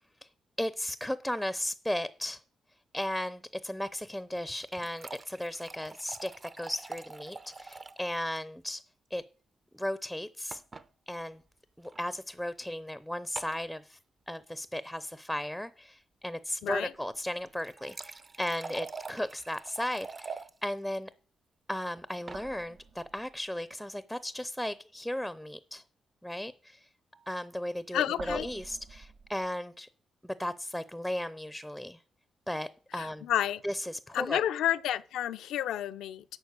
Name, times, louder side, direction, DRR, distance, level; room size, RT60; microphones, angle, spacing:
voice 1, 0.6-2.4 2.9-6.3 6.6-8.8 9.1-9.2 9.7-10.6 11.1-11.4 11.8-14.0 14.3-21.1 21.7-25.8 26.2-26.8 27.3-29.9 30.2-32.0 32.5-33.3 33.6-34.4, left 1 dB, ahead, 0.6 m, -35 dB
sound 1, 4.3-8.1 8.4-8.5 8.7-8.8 10.5-10.9 11.8-12.0 13.4-13.6 17.4-20.5 22.0-22.4, right 4 dB, 35° right, 0.8 m, -45 dB
voice 2, 16.6-16.9 27.9-28.5 32.9-33.6 34.1-36.2, left 11 dB, 90° left, 0.6 m, -30 dB
sound 2, 16.9-20.3 22.1-23.7 27.1-29.5, right 4 dB, 70° right, 1.1 m, -52 dB
11.5 x 4.4 x 8.2 m
cardioid pair, 70°, 0 cm